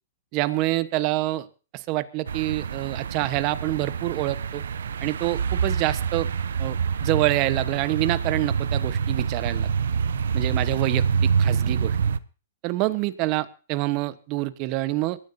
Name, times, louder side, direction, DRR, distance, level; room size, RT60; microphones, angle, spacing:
voice 1, 0.3-1.5 1.7-4.6 5.0-6.3 6.6-9.7 10.3-12.0 12.6-15.2, right 17 dB, 35° right, 13 dB, 1.1 m, -26 dB
sound 1, 2.3-12.2, right 6 dB, 80° right, 0.7 m, -26 dB
22.0 x 13.5 x 2.7 m, 0.34 s
hypercardioid pair, 140°, 0 cm